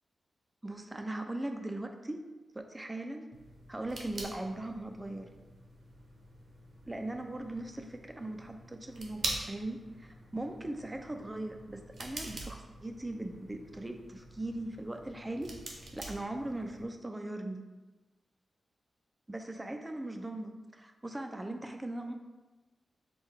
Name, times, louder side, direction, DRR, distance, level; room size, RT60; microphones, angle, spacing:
voice 1, 0.6-2.2 2.5-3.3 3.7-5.3 6.9-15.5 15.9-17.6 19.3-22.1, right 1 dB, 15° right, 5 dB, 0.4 m, -39 dB
sound 1, 3.3-16.8, right 2 dB, 60° right, 0.7 m, -45 dB
6.3 x 2.2 x 3.2 m, 1.2 s
wide cardioid pair, 115°, 0 cm